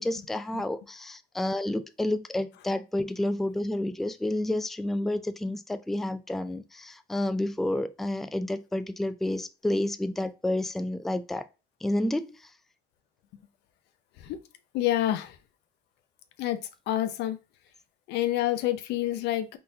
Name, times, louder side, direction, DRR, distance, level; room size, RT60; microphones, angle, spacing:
voice 1, 0.0-11.5 11.8-12.5, left 1 dB, ahead, 0.3 m, -30 dB
voice 2, 14.7-15.4 16.4-16.6 16.9-17.4 18.1-19.6, left 13 dB, 85° left, 0.6 m, -27 dB
4.1 x 3.8 x 2.7 m
cardioid pair, 110°, 17 cm